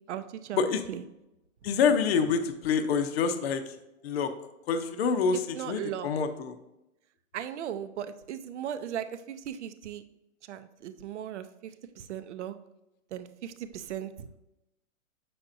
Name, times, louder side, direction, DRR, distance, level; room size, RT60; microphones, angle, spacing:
voice 1, 0.1-1.0 5.5-6.1 7.3-10.0 10.5-11.7 12.0-12.5 13.1-14.3, right 10 dB, 55° right, 11 dB, 0.6 m, -37 dB
voice 2, 1.6-3.8 4.0-4.3 4.7-6.6, left 5 dB, 45° left, 7 dB, 0.7 m, -27 dB
7.7 x 5.9 x 2.6 m, 0.91 s
hypercardioid pair, 145°, 42 cm